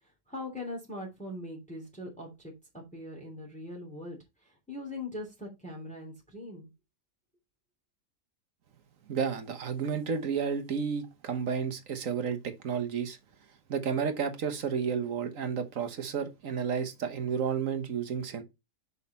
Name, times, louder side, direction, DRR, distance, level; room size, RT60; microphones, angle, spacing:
voice 1, 0.3-6.7, left 1 dB, 5° left, 2.8 m, -41 dB
voice 2, 9.1-13.2 13.7-18.4, right 6 dB, 55° right, 1.4 m, -31 dB
6.5 x 5.4 x 4.1 m
omnidirectional pair, 1.8 m